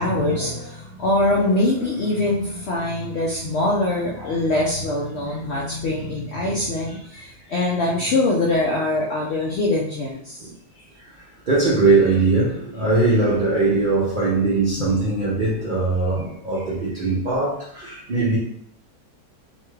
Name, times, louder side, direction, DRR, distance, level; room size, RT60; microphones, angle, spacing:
voice 1, 0.0-10.5 14.8-14.9, left 2 dB, 75° left, -3 dB, 0.6 m, -23 dB
voice 2, 6.9-7.2 10.4-10.5 11.5-18.4, right 3 dB, 65° right, -6 dB, 0.4 m, -21 dB
2.8 x 2.2 x 3.1 m, 0.66 s
omnidirectional pair, 1.6 m